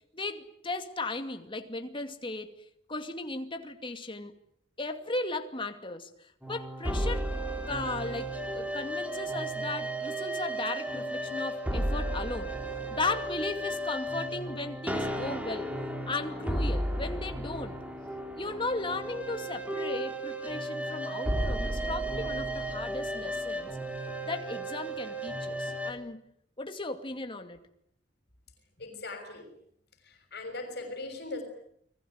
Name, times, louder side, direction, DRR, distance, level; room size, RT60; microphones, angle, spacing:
voice 1, 0.1-2.5 2.9-4.3 4.8-7.3 7.7-12.6 12.9-15.7 16.1-17.8 18.3-23.8 24.2-26.3 26.6-27.6, left 3 dB, 30° left, 2.5 m, -36 dB
sound 1, 6.4-25.9, right 1 dB, 10° right, 3.7 m, -34 dB
voice 2, 28.8-29.5 30.0-31.4, left 2 dB, 65° left, 6.5 m, -39 dB
30.0 x 21.0 x 9.4 m
head